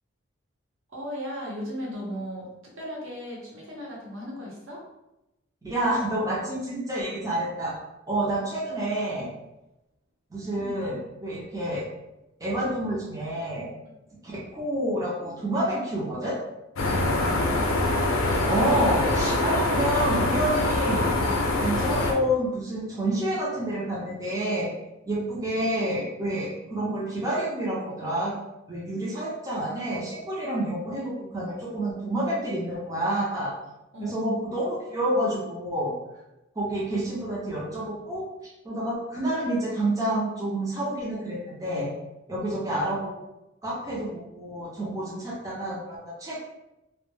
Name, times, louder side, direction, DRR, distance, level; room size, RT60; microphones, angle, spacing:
voice 1, 0.9-2.5 2.7-4.8 10.5-10.8 33.9-34.5, equal, 75° right, -4 dB, 0.8 m, -36 dB
voice 2, 5.6-7.8 8.1-9.3 10.3-11.8 12.4-13.7 14.2-16.4 18.5-21.1 21.6-24.7 25.1-28.3 28.7-33.5 34.0-35.9 36.6-41.9 42.3-43.1 43.6-46.4, right 1 dB, 15° right, -6 dB, 0.4 m, -28 dB
sound 1, 16.8-22.1, left 2 dB, 90° left, 0.4 m, -24 dB
2.2 x 2.1 x 3.1 m, 0.93 s
head